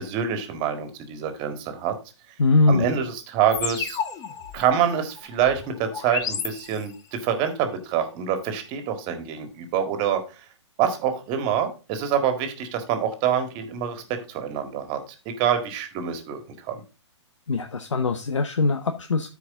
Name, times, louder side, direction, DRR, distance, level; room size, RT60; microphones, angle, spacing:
voice 1, 0.0-2.0 2.7-4.0 4.5-10.2 10.8-15.0 15.3-16.8, right 8 dB, 35° right, 7 dB, 1.8 m, -26 dB
voice 2, 2.4-2.8 17.5-19.3, left 3 dB, 90° left, 7 dB, 0.9 m, -21 dB
sound 1, 3.5-7.2, left 7 dB, 25° left, 1.0 m, -33 dB
13.0 x 4.8 x 3.7 m, 0.30 s
hypercardioid pair, 130°, 15 cm